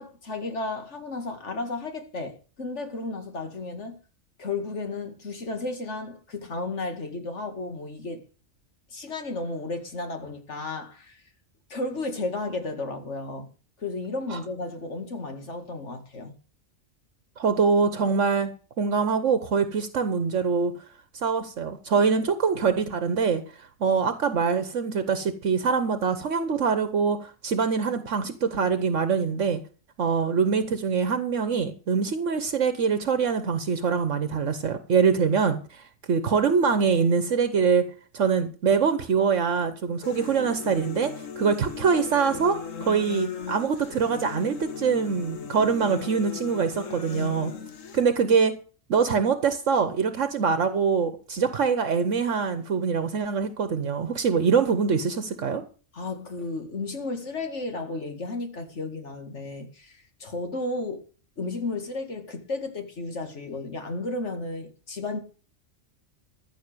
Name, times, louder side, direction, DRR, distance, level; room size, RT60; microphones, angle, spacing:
voice 1, 0.0-4.0 4.4-8.2 8.9-11.2 11.7-13.5 13.8-16.4 55.9-61.1 61.4-65.2, left 3 dB, 65° left, 2.4 m, -33 dB
voice 2, 17.4-18.5 18.8-20.7 21.2-29.6 30.0-37.9 38.1-47.5 47.9-48.5 48.9-55.6, right 5 dB, 70° right, 1.4 m, -24 dB
sound 1, 40.0-48.0, left 6 dB, 80° left, 1.6 m, -37 dB
14.5 x 6.6 x 6.7 m
omnidirectional pair, 1.3 m